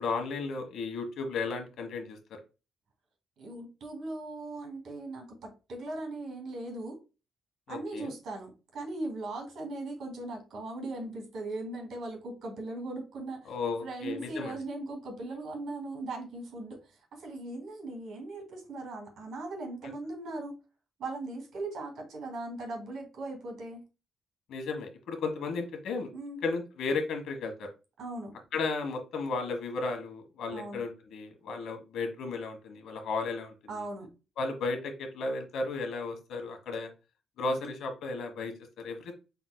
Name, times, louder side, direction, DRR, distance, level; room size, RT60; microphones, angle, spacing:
voice 1, 0.0-2.4 7.7-8.1 13.4-14.6 24.5-26.1 26.4-27.7 28.5-33.9 34.4-36.9 37.4-39.1, left 3 dB, 85° left, 6 dB, 1.3 m, -34 dB
voice 2, 3.4-7.0 7.7-13.5 13.8-20.6 21.0-23.8 26.1-26.4 28.0-28.3 30.5-30.8 33.7-34.1 37.4-37.6, right 2 dB, 75° right, 0 dB, 2.9 m, -39 dB
5.8 x 4.0 x 2.2 m, 0.30 s
wide cardioid pair, 170°, 0 cm